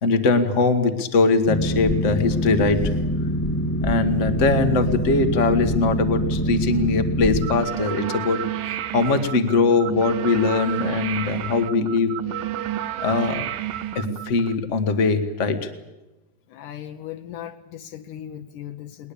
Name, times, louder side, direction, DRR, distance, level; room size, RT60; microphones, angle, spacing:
voice 1, 0.0-2.8 3.8-12.1 13.0-13.5 13.9-15.7, left 4 dB, 45° left, 0.9 m, -21 dB
Boat Water vehicle, 1.5-7.5, equal, 10° left, 0.6 m, -24 dB
sound 1, 7.4-14.5, right 12 dB, 90° right, 2.6 m, -30 dB
voice 2, 16.5-19.1, left 11 dB, 75° left, 2.4 m, -37 dB
20.5 x 20.0 x 8.5 m
omnidirectional pair, 3.9 m